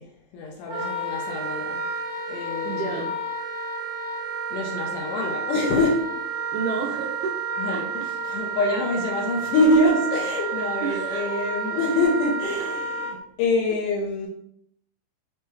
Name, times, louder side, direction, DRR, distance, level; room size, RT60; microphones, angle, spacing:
voice 1, 0.3-1.9 2.3-3.0 4.5-6.1 7.6-14.3, left 2 dB, 75° left, -3 dB, 2.0 m, -25 dB
Wind instrument woodwind instrument, 0.7-13.1, right 4 dB, 60° right, 1.6 m, -30 dB
voice 2, 2.6-3.2 6.5-7.3 7.7-7.8 10.8-11.3, right 4 dB, 85° right, 0 dB, 1.9 m, -30 dB
5.9 x 2.2 x 3.0 m, 0.73 s
omnidirectional pair, 4.1 m